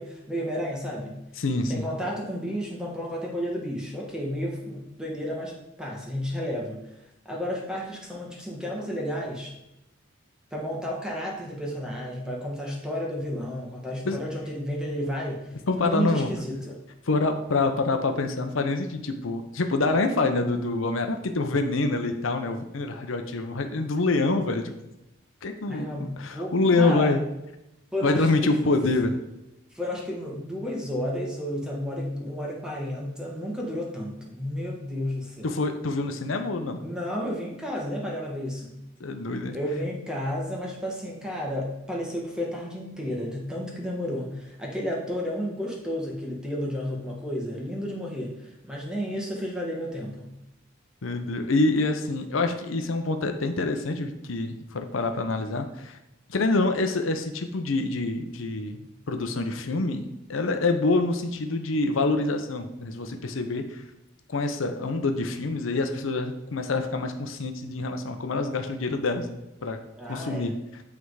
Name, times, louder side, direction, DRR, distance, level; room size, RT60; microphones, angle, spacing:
voice 1, 0.0-1.2 1.7-6.9 7.2-9.5 10.5-16.8 25.7-27.1 27.9-28.6 29.7-35.5 36.8-38.8 39.5-50.3 70.0-70.6, equal, 5° right, -2 dB, 1.3 m, -32 dB
voice 2, 1.4-1.8 14.0-14.2 15.7-16.3 17.1-24.7 25.4-25.9 26.2-27.2 28.0-29.2 35.4-36.8 39.0-39.6 51.0-56.0 56.3-63.8 64.3-69.8 70.1-70.5, left 3 dB, 80° left, 6 dB, 0.7 m, -26 dB
8.8 x 3.5 x 4.7 m, 0.90 s
head